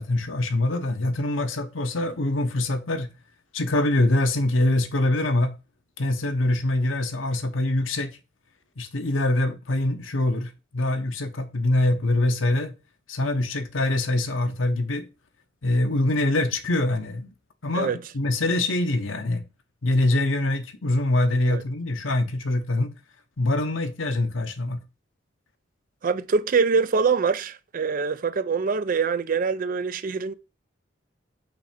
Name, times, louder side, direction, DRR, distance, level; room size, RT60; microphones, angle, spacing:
voice 1, 0.0-3.1 3.5-5.5 6.0-8.1 8.8-12.7 13.1-15.1 15.6-17.3 17.6-19.4 19.8-22.9 23.4-24.8, left 2 dB, 90° left, 0.9 m, -24 dB
voice 2, 26.0-30.3, right 5 dB, 45° right, 0.4 m, -24 dB
5.8 x 3.3 x 5.1 m
head